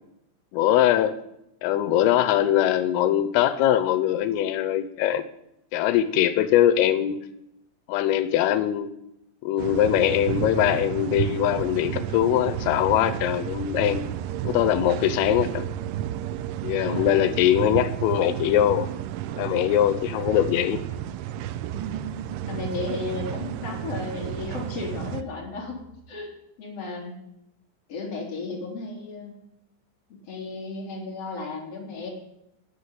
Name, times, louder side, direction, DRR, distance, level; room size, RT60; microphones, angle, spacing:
voice 1, 0.5-1.2 1.6-5.2 5.7-7.2 7.9-8.9 9.4-14.0 14.4-15.7 16.6-18.9 19.4-20.8, left 11 dB, 85° left, 12 dB, 3.4 m, -22 dB
sound 1, 9.6-25.2, right 11 dB, 80° right, 3.0 m, -32 dB
voice 2, 16.8-17.3 22.5-26.3 26.6-27.2 27.9-29.4 30.1-32.1, left 3 dB, 30° left, -2 dB, 4.4 m, -34 dB
sound 2, 21.7-23.4 24.8-26.1, right 6 dB, 35° right, 2.2 m, -41 dB
19.0 x 6.6 x 9.1 m, 0.83 s
omnidirectional pair, 5.8 m